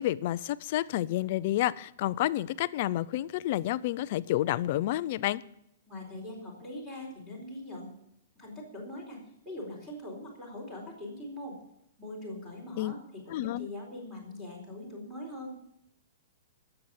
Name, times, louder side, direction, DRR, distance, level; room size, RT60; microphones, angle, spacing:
voice 1, 0.0-5.4 12.8-12.9 13.3-13.7, left 14 dB, 35° left, 16 dB, 0.4 m, -29 dB
voice 2, 5.9-8.0 8.4-11.6 12.0-13.0 13.3-15.5, left 1 dB, 10° right, -2 dB, 4.2 m, -42 dB
19.5 x 7.9 x 7.1 m, 0.77 s
hypercardioid pair, 180°, 0 cm